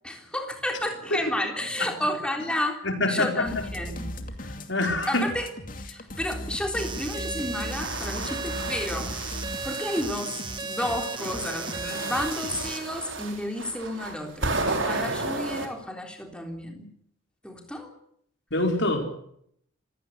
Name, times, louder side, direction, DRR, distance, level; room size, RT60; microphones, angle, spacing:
voice 1, 0.0-2.8 3.1-4.2 5.1-5.5 5.9-9.1 9.6-16.9 17.4-17.9, left 1 dB, 5° left, 3 dB, 3.6 m, -31 dB
voice 2, 2.8-3.6 4.7-5.2 14.9-15.1 18.5-19.1, left 2 dB, 65° left, 4 dB, 5.0 m, -25 dB
sound 1, 3.4-12.7, left 1 dB, 40° left, 2.5 m, -38 dB
sound 2, 6.8-12.8, right 5 dB, 25° right, 2.0 m, -36 dB
sound 3, 7.6-10.2 10.8-15.7, right 3 dB, 70° right, 4.4 m, -33 dB
27.0 x 16.5 x 8.2 m, 0.69 s
head